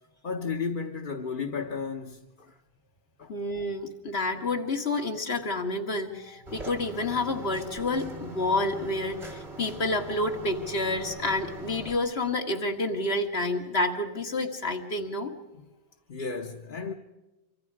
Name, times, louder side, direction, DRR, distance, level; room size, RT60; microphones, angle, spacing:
voice 1, 0.2-2.5 3.2-3.3 16.1-16.9, left 5 dB, 55° left, 1.2 m, -33 dB
voice 2, 3.3-15.3, left 2 dB, 75° left, 2.1 m, -29 dB
sound 1, 6.5-12.0, right 2 dB, 85° right, 2.3 m, -42 dB
25.5 x 25.0 x 4.8 m
omnidirectional pair, 1.1 m